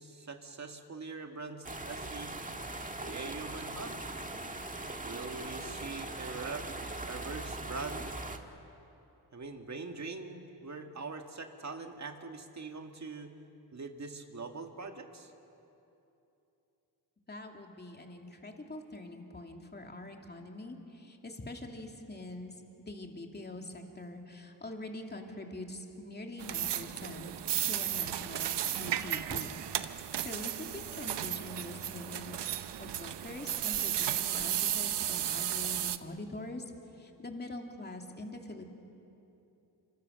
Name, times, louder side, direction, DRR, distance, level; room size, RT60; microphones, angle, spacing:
voice 1, 0.0-2.3 3.0-4.0 5.0-6.7 7.1-8.1 9.3-13.3 13.7-15.3, right 4 dB, 40° right, 4 dB, 2.2 m, -42 dB
sound 1, 1.6-8.4, right 2 dB, 20° right, 1.8 m, -40 dB
voice 2, 17.3-27.3 27.6-36.6 36.9-38.7, left 2 dB, 25° left, 2 dB, 2.8 m, -44 dB
sound 2, 26.4-36.0, right 11 dB, 75° right, 0.9 m, -34 dB
26.5 x 24.5 x 6.6 m, 2.9 s
cardioid pair, 75°, 41 cm